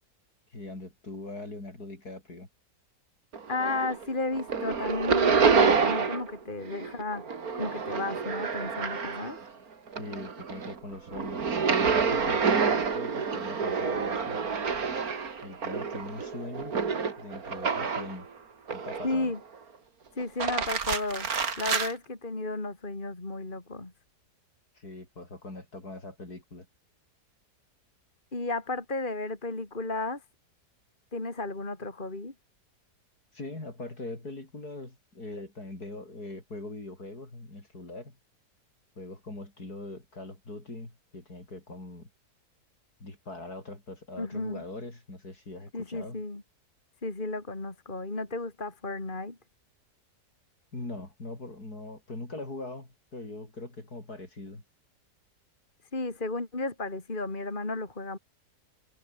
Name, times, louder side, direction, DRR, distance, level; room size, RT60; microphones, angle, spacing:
voice 1, 0.5-2.5 10.0-11.4 11.7-14.4 15.4-16.8 17.2-18.3 18.7-19.3 24.7-26.7 33.3-38.2 39.0-42.1 43.0-46.2 50.7-54.6, left 2 dB, 65° left, 6.7 m, -41 dB
sound 1, 3.3-4.0 4.3-6.3 6.6-9.5 9.9-18.2 18.7-19.4 20.2-21.9, right 5 dB, 60° right, 2.6 m, -28 dB
voice 2, 3.5-7.2 7.5-9.4 19.0-19.4 20.2-21.3 21.6-23.9 28.3-30.2 31.1-32.3 44.2-44.6 45.7-46.4 47.0-49.4 55.9-58.2, left 2 dB, 30° left, 3.3 m, -33 dB
omnidirectional pair, 1.8 m